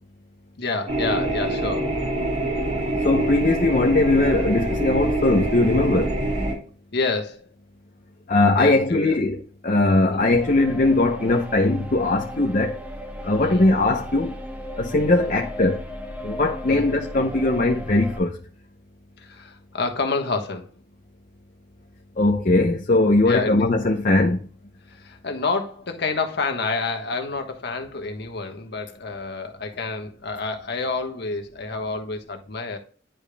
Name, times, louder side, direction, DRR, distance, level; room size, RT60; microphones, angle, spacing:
voice 1, 0.6-2.0 6.9-7.5 8.6-9.2 10.1-10.3 13.4-13.7 15.2-15.4 16.7-16.9 19.2-20.7 23.2-23.7 24.9-32.8, left 3 dB, 60° left, 1.3 m, -28 dB
sound 1, 0.9-6.5, right 1 dB, 45° right, 3.1 m, -25 dB
voice 2, 3.0-6.1 8.3-12.8 13.2-14.3 14.8-15.8 16.2-18.4 22.2-24.4, left 2 dB, 45° left, 0.7 m, -20 dB
sound 2, 10.2-18.2, equal, 10° right, 0.9 m, -36 dB
10.0 x 5.1 x 2.2 m
head